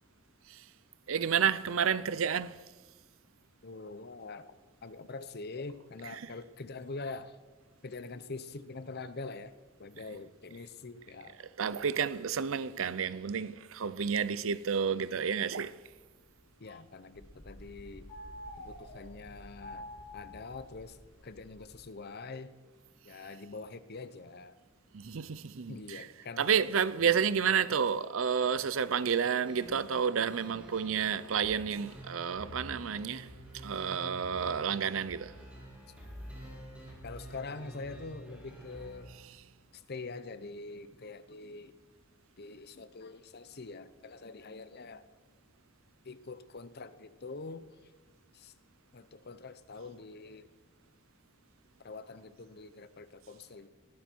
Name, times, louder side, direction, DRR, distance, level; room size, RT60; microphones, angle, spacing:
voice 1, 1.1-2.6 6.0-6.3 10.1-10.2 11.4-15.8 24.9-26.1 26.4-35.4, right 7 dB, 70° right, 0.6 m, -30 dB
voice 2, 3.6-4.5 4.8-7.4 7.8-9.5 9.8-11.4 16.6-18.2 18.6-19.9 20.1-21.0 21.2-22.5 23.0-24.6 25.7-26.5 37.0-39.1 39.7-41.7 42.4-45.1 46.0-47.7 48.3-48.5 48.9-50.5 51.8-53.7, left 3 dB, 50° left, 0.8 m, -44 dB
sound 1, 15.5-16.8 17.0-21.8, left 1 dB, 80° left, 5.1 m, -49 dB
sound 2, 29.4-39.6, equal, 5° right, 4.0 m, -49 dB
19.5 x 13.0 x 4.6 m
head